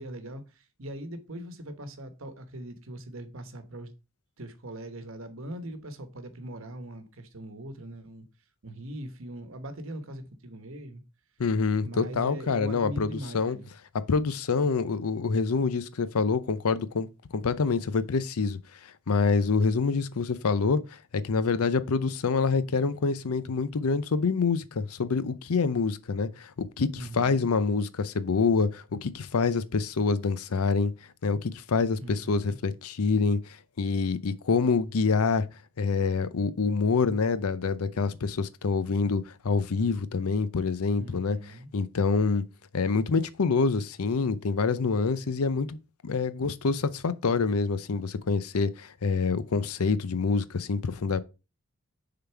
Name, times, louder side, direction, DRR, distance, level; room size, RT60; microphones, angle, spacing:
voice 1, 0.0-3.9 4.4-8.3 8.6-11.0 11.8-13.7 26.9-27.5 32.0-32.6 41.0-41.7, right 1 dB, 65° right, 1.0 m, -41 dB
voice 2, 11.4-13.6 13.9-18.6 19.1-30.9 31.2-35.5 35.8-41.4 41.7-42.4 42.7-45.8 46.0-51.2, left 4 dB, 80° left, 0.6 m, -26 dB
6.8 x 3.9 x 4.5 m
head